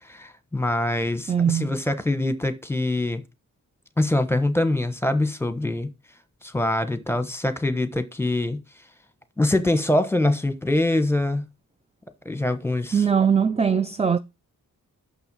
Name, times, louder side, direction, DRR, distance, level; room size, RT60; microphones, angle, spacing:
voice 1, 0.0-3.2 4.0-5.9 6.4-8.6 9.4-11.4 12.2-13.0, left 1 dB, 5° left, 1.1 m, -24 dB
voice 2, 1.3-1.7 12.9-14.2, right 7 dB, 20° right, 0.5 m, -21 dB
6.5 x 5.8 x 5.4 m
wide cardioid pair, 80°, 34 cm